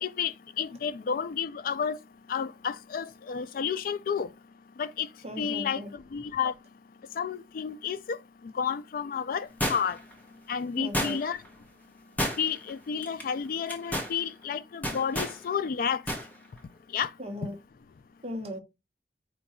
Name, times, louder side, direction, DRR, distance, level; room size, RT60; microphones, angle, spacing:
voice 1, 0.0-2.0 2.3-4.3 4.8-5.1 5.4-5.8 6.1-6.5 7.2-8.2 8.6-10.0 10.5-11.4 12.4-16.0 16.9-17.1, left 7 dB, 50° left, 0.3 m, -31 dB
voice 2, 5.2-5.9 10.8-11.2 17.2-17.5 18.2-18.6, left 1 dB, 35° right, 0.8 m, -37 dB
sound 1, 9.6-10.1 10.9-11.5 12.2-12.7 13.0-13.2 13.7-14.1 14.8-15.4 16.1-16.3 16.6-16.7, equal, 10° left, 0.8 m, -30 dB
4.6 x 2.3 x 4.1 m
head